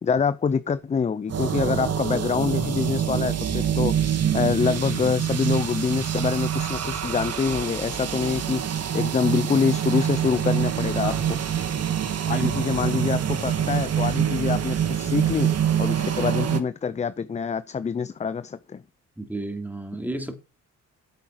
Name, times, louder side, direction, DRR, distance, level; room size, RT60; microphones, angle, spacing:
voice 1, 0.0-11.4 12.3-15.5 15.8-18.8, left 6 dB, 25° left, 0.5 m, -26 dB
sound 1, 1.3-16.6, right 9 dB, 55° right, 1.9 m, -25 dB
voice 2, 12.3-12.6 19.2-20.3, right 1 dB, 5° right, 2.8 m, -32 dB
9.5 x 8.1 x 5.8 m
cardioid pair, 90°, 30 cm